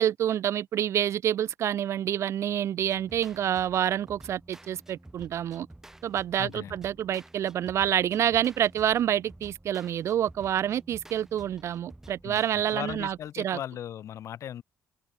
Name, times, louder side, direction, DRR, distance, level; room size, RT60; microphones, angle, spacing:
voice 1, 0.0-5.7 6.0-13.6, right 10 dB, 55° right, 0.4 m, -27 dB
sound 1, 2.8-13.3, right 1 dB, 10° right, 4.1 m, -51 dB
voice 2, 6.4-6.8 12.2-14.6, left 10 dB, 60° left, 5.1 m, -38 dB
cardioid pair, 145°, 6 cm